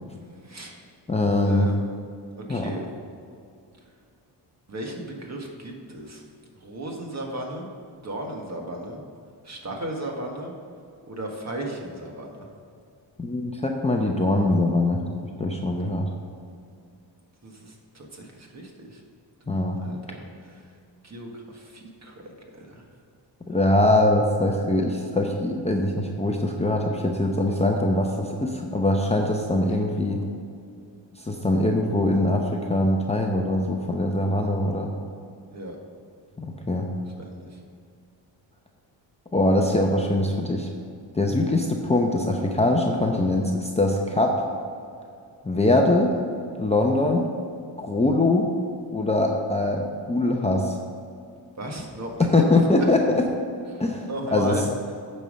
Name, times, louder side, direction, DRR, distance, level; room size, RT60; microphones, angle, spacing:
voice 1, 0.4-0.7 1.5-1.8 2.5-2.9 4.7-6.2 6.6-7.7 8.0-9.0 9.4-10.5 11.1-12.5 17.4-19.0 19.8-20.6 21.0-22.2 22.4-22.9 35.5-35.8 37.2-37.6 45.8-45.9 51.6-52.1 52.5-52.9 53.7-54.6, right 1 dB, 35° right, 1 dB, 1.6 m, -35 dB
voice 2, 1.1-1.7 2.5-2.7 13.2-15.0 15.4-16.1 19.5-19.8 23.5-30.2 31.2-34.9 36.4-36.9 39.3-40.7 41.1-44.4 45.4-46.1 46.6-47.3 47.8-48.5 48.9-50.8 52.2-53.2 53.8-54.6, left 2 dB, 15° left, 1 dB, 0.7 m, -22 dB
9.0 x 5.6 x 6.4 m, 2.4 s
cardioid pair, 115°, 45 cm